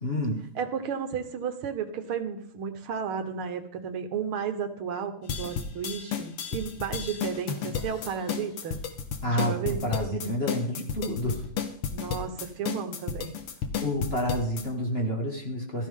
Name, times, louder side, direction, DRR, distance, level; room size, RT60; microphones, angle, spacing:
voice 1, 0.0-0.4 9.2-11.4 13.8-15.9, equal, 30° left, 0 dB, 2.1 m, -29 dB
voice 2, 0.6-8.8 9.3-9.8 11.9-13.3, right 7 dB, 75° right, 8 dB, 1.9 m, -33 dB
sound 1, 5.3-14.6, left 7 dB, 85° left, 2.2 m, -32 dB
15.0 x 14.0 x 3.7 m, 0.63 s
omnidirectional pair, 2.4 m